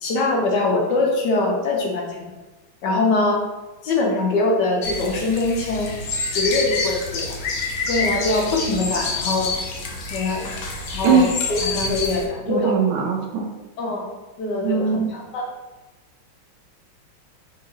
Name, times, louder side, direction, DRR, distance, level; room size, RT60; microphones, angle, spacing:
voice 1, 0.0-2.2 2.8-3.4 3.8-5.9 6.3-7.4 7.9-9.5 10.1-10.5 10.9-11.2 11.5-12.7 13.8-14.1 14.4-15.5, left 2 dB, 65° left, -1 dB, 1.1 m, -22 dB
sound 1, 4.8-12.2, left 3 dB, 90° left, 0.7 m, -27 dB
voice 2, 12.5-13.5 14.6-15.1, right 5 dB, 75° right, 1 dB, 1.2 m, -20 dB
5.5 x 2.8 x 2.7 m, 1.1 s
omnidirectional pair, 2.4 m